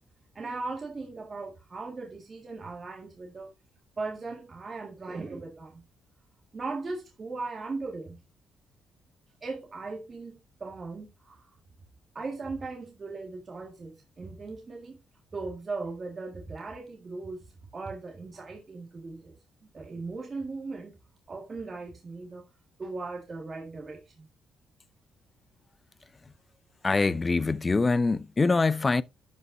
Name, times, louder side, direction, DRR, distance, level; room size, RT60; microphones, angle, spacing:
voice 1, 0.4-3.5 4.0-5.8 6.5-8.2 9.4-11.5 12.1-15.0 15.3-17.4 17.7-19.3 19.6-21.0 21.3-22.4 22.8-24.3, right 3 dB, 35° right, 1.8 m, -38 dB
voice 2, 26.8-29.0, left 3 dB, 25° left, 0.5 m, -24 dB
12.0 x 5.4 x 2.6 m
cardioid pair, 90°, 0 cm